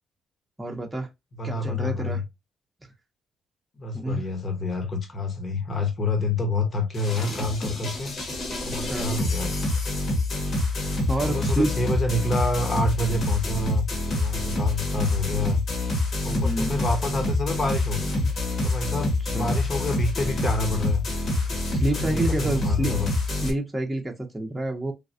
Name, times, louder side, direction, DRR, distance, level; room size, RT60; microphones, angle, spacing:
voice 1, 0.6-1.1 1.4-2.2 2.8-2.9 3.9-4.2 8.7-9.1 11.1-11.7 16.3-16.8 18.2-18.3 19.2-19.5 21.4-23.0 23.3-24.9, right 1 dB, 15° right, 0.7 m, -29 dB
voice 2, 1.4-2.2 3.8-8.1 8.6-9.7 11.3-15.6 16.2-18.2 18.6-21.0 22.0-23.1, left 2 dB, 40° left, 0.9 m, -28 dB
sound 1, 6.9-23.5, left 2 dB, 55° left, 1.2 m, -26 dB
3.3 x 2.2 x 2.5 m
cardioid pair, 90°, 0 cm